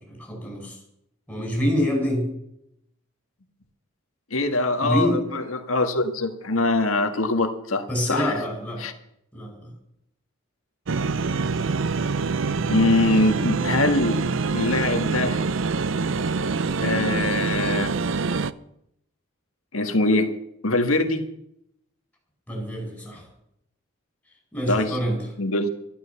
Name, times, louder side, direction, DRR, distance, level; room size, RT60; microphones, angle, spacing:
voice 1, 0.1-0.8 1.3-2.3 4.8-5.2 7.9-8.8 9.3-9.7 22.5-23.3 24.5-25.2, equal, 5° left, -1 dB, 5.7 m, -26 dB
voice 2, 4.3-8.3 8.8-8.9 12.7-14.2 14.5-15.4 16.8-17.9 19.7-20.3 20.6-21.2 24.7-25.0 25.4-25.7, left 2 dB, 85° left, 6 dB, 1.7 m, -23 dB
sound 1, 10.9-18.5, right 4 dB, 65° right, 0.5 m, -25 dB
12.5 x 12.0 x 7.1 m, 0.77 s
head